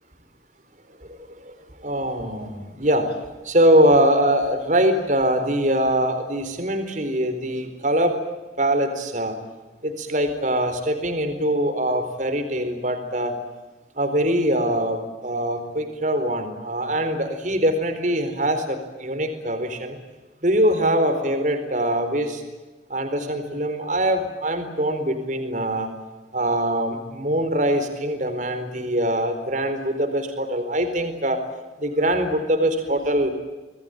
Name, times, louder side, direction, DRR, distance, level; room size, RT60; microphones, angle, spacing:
voice 1, 1.1-3.1 3.4-8.2 8.6-9.3 9.8-13.4 14.0-20.0 20.4-22.4 22.9-25.9 26.3-31.4 31.8-33.3, right 1 dB, 45° right, 8 dB, 4.2 m, -23 dB
27.0 x 20.5 x 9.2 m, 1.1 s
head